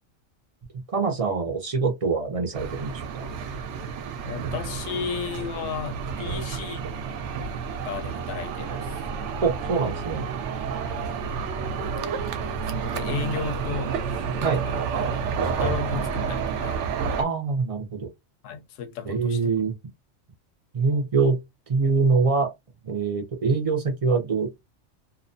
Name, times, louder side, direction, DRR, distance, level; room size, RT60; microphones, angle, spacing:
voice 1, 0.7-3.3 9.4-10.3 14.4-14.6 17.2-18.1 19.1-19.7 20.7-21.4 21.7-22.5 22.8-24.5, right 4 dB, 50° right, 0.4 m, -24 dB
sound 1, 2.5-17.2, right 6 dB, 70° right, 0.8 m, -30 dB
voice 2, 4.3-6.8 7.8-9.0 10.8-11.3 12.0-12.4 12.6-14.8 15.4-16.8 18.4-19.5, left 7 dB, 75° left, 1.0 m, -34 dB
2.8 x 2.1 x 2.5 m
omnidirectional pair, 1.3 m